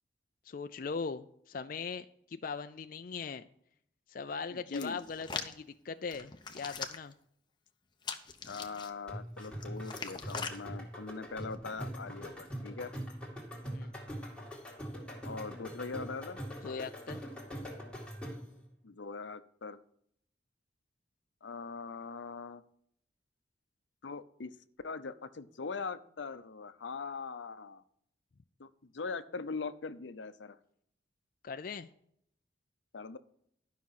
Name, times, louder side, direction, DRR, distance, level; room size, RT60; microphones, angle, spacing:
voice 1, 0.5-3.4 4.1-7.1 13.7-13.9 16.6-17.2 31.4-31.9, left 5 dB, 50° left, 9 dB, 0.4 m, -40 dB
voice 2, 4.5-5.0 8.5-12.9 15.2-16.4 18.8-19.8 21.4-22.6 24.0-24.6 24.8-27.8 28.6-30.6 32.9-33.2, left 4 dB, 85° left, 12 dB, 0.7 m, -41 dB
Hands, 4.7-5.5 6.1-7.1 8.0-8.9 9.4-10.6 11.3-11.5, left 5 dB, 25° left, 0.8 m, -41 dB
sound 1, 9.1-18.6, equal, 5° left, 2.2 m, -43 dB
12.0 x 5.8 x 5.8 m, 0.69 s
head